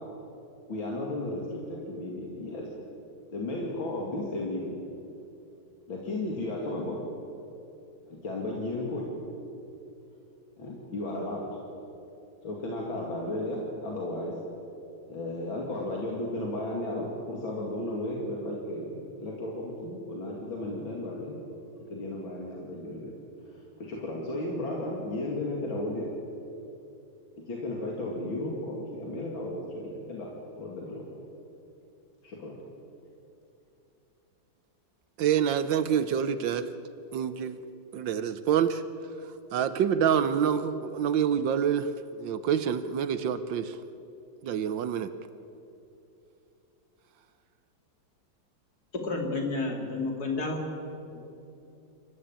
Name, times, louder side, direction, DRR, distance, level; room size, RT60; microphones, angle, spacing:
voice 1, 0.7-2.7 3.3-4.8 5.9-7.0 8.2-9.1 10.6-11.5 12.4-14.3 15.1-21.4 21.9-23.1 23.4-26.1 27.5-30.3 30.6-31.1 32.2-32.6, left 1 dB, 85° left, -2 dB, 3.3 m, -34 dB
voice 2, 35.2-36.7 37.1-37.6 37.9-38.8 39.5-41.9 42.2-43.8 44.4-45.1, right 8 dB, 75° right, 12 dB, 1.5 m, -27 dB
voice 3, 48.9-50.7, left 3 dB, 50° left, 1 dB, 3.5 m, -30 dB
27.5 x 14.5 x 8.9 m, 2.8 s
omnidirectional pair, 2.1 m